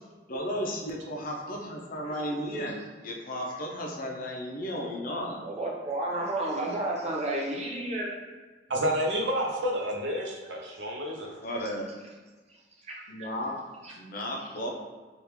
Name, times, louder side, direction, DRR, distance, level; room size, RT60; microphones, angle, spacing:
voice 1, 0.3-5.4 11.4-11.9 13.1-13.5 13.9-14.7, equal, 50° left, -1 dB, 0.5 m, -34 dB
voice 2, 5.4-8.1 12.9-13.0 13.8-13.9, right 1 dB, 40° right, -2 dB, 0.6 m, -31 dB
voice 3, 8.7-11.3, equal, 85° right, -1 dB, 0.6 m, -29 dB
3.4 x 2.4 x 3.0 m, 1.3 s
head